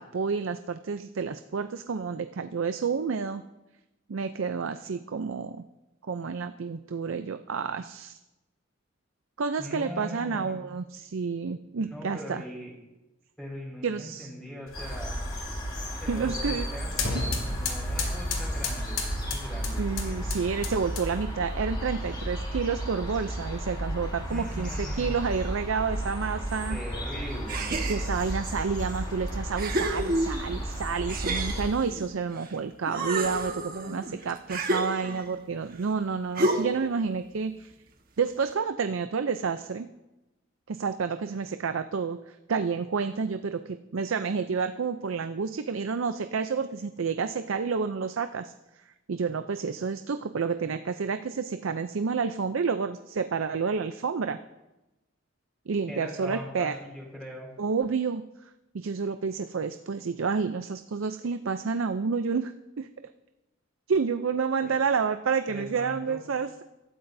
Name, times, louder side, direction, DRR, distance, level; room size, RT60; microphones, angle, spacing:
voice 1, 0.0-3.4 4.1-5.6 6.1-8.2 9.4-12.4 13.8-14.3 16.1-16.7 18.0-18.1 19.8-26.8 27.9-37.7 38.2-39.9 40.7-48.5 49.1-54.4 55.7-56.7 57.6-58.2 58.7-62.5 62.8-62.9 63.9-66.6, right 5 dB, 75° right, 9 dB, 0.5 m, -29 dB
voice 2, 9.6-10.6 11.8-12.7 13.4-15.2 16.0-20.2 24.3-25.1 26.7-27.7 55.9-57.5 64.6-64.8 65.5-66.2, equal, 5° left, -2 dB, 4.7 m, -41 dB
sound 1, 14.7-21.4, left 3 dB, 75° left, 2.7 m, -35 dB
sound 2, 14.7-31.7, right 1 dB, 25° left, 4.4 m, -33 dB
sound 3, 27.5-28.3 29.0-29.1 29.6-30.6 31.1-32.5 32.8-35.4 36.4-36.9, right 1 dB, 45° right, 1.4 m, -30 dB
25.5 x 12.5 x 2.7 m, 1.0 s
head